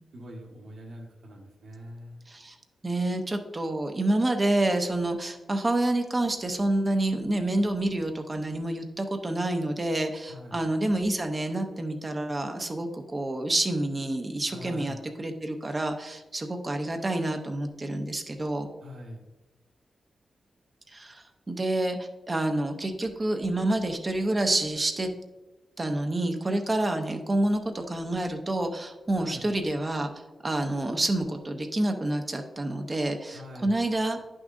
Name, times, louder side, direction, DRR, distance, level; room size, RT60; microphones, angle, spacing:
voice 1, 0.1-2.2 10.3-10.6 14.5-15.0 18.8-19.2 29.2-29.4 33.3-33.7, equal, 80° right, -2 dB, 1.4 m, -43 dB
voice 2, 2.8-18.7 20.9-25.1 25.8-34.2, right 1 dB, 20° right, 5 dB, 0.6 m, -28 dB
9.8 x 6.2 x 2.6 m, 1.1 s
wide cardioid pair, 170°, 0 cm